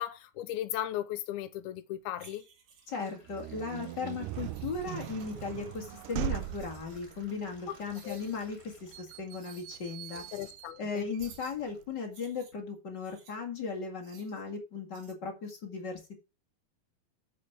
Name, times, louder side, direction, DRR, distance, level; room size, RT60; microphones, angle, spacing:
voice 1, 0.0-2.4 7.7-7.8 8.0-8.2 10.3-11.1, left 13 dB, 90° left, 2.6 m, -36 dB
sound 1, 1.9-2.0 2.4-9.6 10.0-10.1 11.0-11.1 11.6-11.7 12.1-12.3, left 1 dB, 10° left, 2.6 m, -58 dB
sound 2, 2.2-3.0 4.4-5.4 6.3-7.2 7.9-8.5 9.3-9.7 10.1-10.5 11.2-11.6 12.1-13.4 14.0-14.4 14.9-15.1, right 6 dB, 45° right, 2.0 m, -56 dB
voice 2, 2.9-10.2 10.8-16.2, left 5 dB, 35° left, 1.9 m, -37 dB
sound 3, 3.2-11.9, right 15 dB, 80° right, 1.9 m, -41 dB
8.5 x 7.5 x 5.8 m
omnidirectional pair, 4.4 m